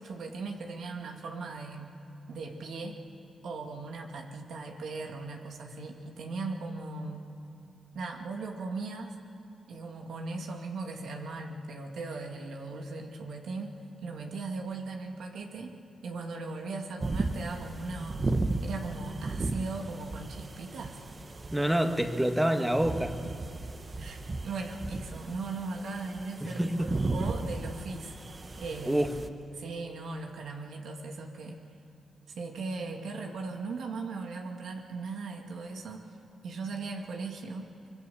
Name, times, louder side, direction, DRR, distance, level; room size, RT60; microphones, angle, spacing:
voice 1, 0.0-1.9 2.3-3.0 3.4-7.3 7.9-9.1 9.7-13.7 14.0-15.7 16.0-18.3 18.6-21.0 24.0-28.1 28.6-29.1 29.5-31.6 32.3-36.1 36.4-37.7, right 3 dB, 80° right, 2 dB, 2.3 m, -38 dB
sound 1, 17.0-29.3, right 2 dB, 40° right, 1.5 m, -36 dB
voice 2, 21.5-23.2 26.4-27.0 28.8-29.4, right 1 dB, 10° right, 6 dB, 1.7 m, -27 dB
24.0 x 22.0 x 7.2 m, 2.7 s
cardioid pair, 60°, 0 cm